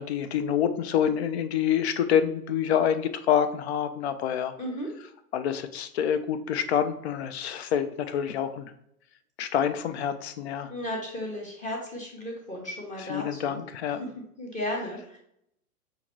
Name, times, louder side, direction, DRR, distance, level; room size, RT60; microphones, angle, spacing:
voice 1, 0.0-4.6 5.3-8.7 9.4-10.7 13.1-14.0, left 9 dB, 45° left, 11 dB, 0.4 m, -27 dB
voice 2, 4.6-4.9 10.7-13.6 14.0-14.1 14.4-15.2, left 1 dB, 15° left, -1 dB, 0.8 m, -34 dB
5.7 x 2.5 x 3.0 m, 0.72 s
hypercardioid pair, 115°, 46 cm